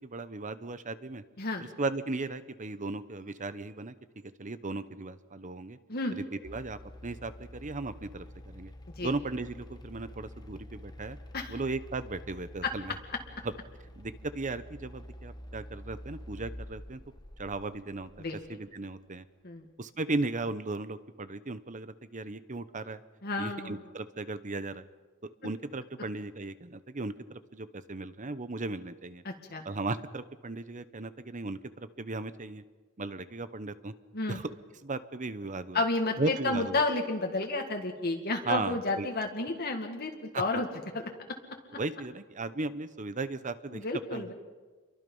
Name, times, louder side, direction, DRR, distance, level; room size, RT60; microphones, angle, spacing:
voice 1, 0.0-1.2 1.6-3.9 4.4-5.8 6.1-8.7 9.0-11.2 11.5-13.0 13.4-13.5 14.0-17.0 17.4-19.2 19.8-23.0 23.4-24.8 25.4-29.2 29.6-32.6 33.0-33.9 34.3-34.5 34.8-35.8 36.2-36.8 38.5-39.1 40.3-40.4 41.8-43.8 44.1-44.3, right 3 dB, 35° right, 13 dB, 1.0 m, -36 dB
sound 1, 6.4-18.7, equal, 20° left, 1.2 m, -48 dB
voice 2, 23.2-23.8 29.3-29.6 34.1-34.4 35.7-40.7 43.7-44.3, left 2 dB, 50° left, 2 dB, 2.0 m, -31 dB
29.0 x 23.5 x 5.6 m, 1.3 s
head